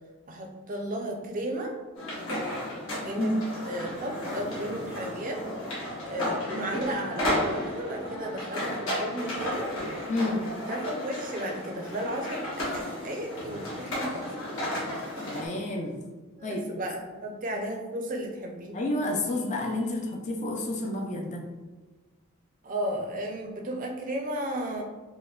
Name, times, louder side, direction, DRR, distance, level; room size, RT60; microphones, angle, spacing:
voice 1, 0.3-1.8 3.0-3.3 3.6-5.4 6.0-9.7 10.4-14.3 16.4-18.8 22.6-24.8, right 1 dB, 40° right, 1 dB, 0.4 m, -34 dB
sound 1, 1.9-15.5, left 1 dB, 70° left, 1.3 m, -33 dB
voice 2, 10.1-10.4 15.3-15.9 16.4-16.6 18.7-21.4, left 2 dB, 35° left, 1 dB, 0.4 m, -29 dB
4.6 x 2.1 x 2.2 m, 1.2 s
head